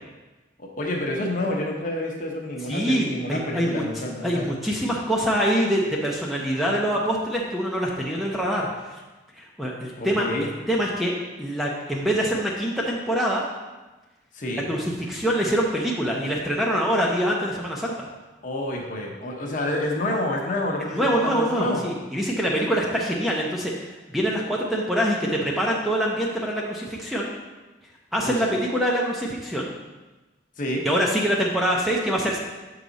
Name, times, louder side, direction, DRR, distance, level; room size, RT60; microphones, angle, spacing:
voice 1, 0.6-4.5 10.0-10.4 14.3-14.6 18.4-21.9 28.2-28.4 30.6-30.8, left 1 dB, 45° left, 0 dB, 1.0 m, -28 dB
voice 2, 2.7-3.8 4.2-9.0 9.4-13.4 14.7-18.1 20.9-23.7 24.1-27.3 28.1-29.7 30.8-32.4, equal, ahead, -3 dB, 0.6 m, -25 dB
6.7 x 4.9 x 4.0 m, 1.2 s
head